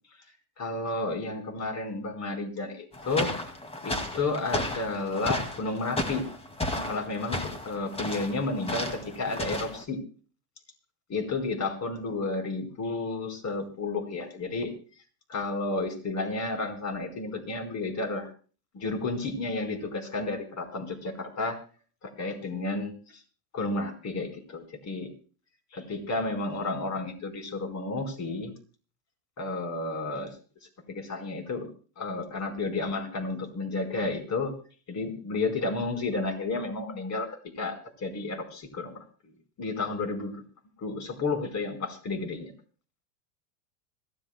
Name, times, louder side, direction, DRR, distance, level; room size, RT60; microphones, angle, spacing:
voice 1, 0.6-3.3 3.8-6.2 6.7-10.0 11.1-14.7 15.3-18.3 18.7-21.6 22.0-22.9 23.5-25.1 25.7-28.5 29.4-30.3 30.9-31.7 32.0-34.5 34.9-39.3 39.6-40.4 40.8-42.5, left 3 dB, 35° left, 5 dB, 4.5 m, -32 dB
sound 1, 2.9-9.8, left 1 dB, 15° left, 2.2 m, -34 dB
26.0 x 14.5 x 2.2 m, 0.38 s
supercardioid pair, 120°, 46 cm